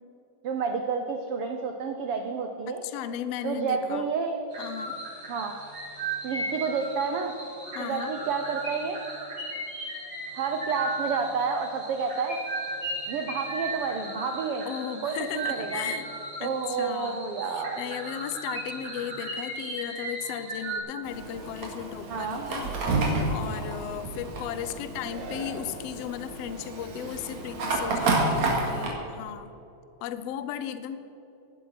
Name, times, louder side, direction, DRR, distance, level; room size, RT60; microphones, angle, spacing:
voice 1, 0.4-2.8 3.4-4.4 5.3-5.5 6.2-7.3 7.8-9.0 10.3-12.4 13.1-14.7 15.0-15.9 16.4-17.8 22.1-22.5 28.1-28.3, right 5 dB, 90° right, 5 dB, 1.2 m, -30 dB
voice 2, 2.7-4.1 4.6-5.0 7.7-8.1 14.6-16.1 16.4-22.7 23.0-29.5 30.0-31.0, left 10 dB, 85° left, 12 dB, 1.3 m, -36 dB
sound 1, 4.5-20.8, right 1 dB, 45° right, 5.6 m, -36 dB
Fire, 21.0-28.9, right 2 dB, 60° right, 3.3 m, -30 dB
17.0 x 11.5 x 5.9 m, 2.9 s
omnidirectional pair, 3.8 m